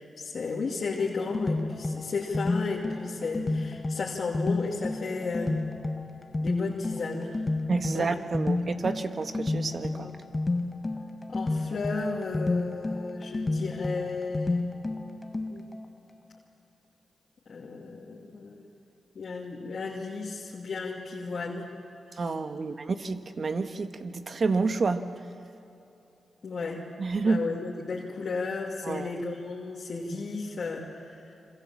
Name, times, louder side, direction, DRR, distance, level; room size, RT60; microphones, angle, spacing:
voice 1, 0.0-5.5 6.4-7.5 7.9-8.1 9.9-10.2 11.3-14.7 15.5-15.7 17.5-18.7 19.1-21.7 22.2-22.3 26.4-26.8 27.2-31.2, left 4 dB, 60° left, -4 dB, 2.7 m, -34 dB
sound 1, 1.0-15.9, left 2 dB, 30° left, 1.5 m, -31 dB
voice 2, 7.7-10.1 22.2-25.1 27.0-27.5 28.8-29.1, right 4 dB, 55° right, 8 dB, 1.5 m, -29 dB
27.0 x 25.5 x 7.5 m, 2.9 s
supercardioid pair, 50°, 0 cm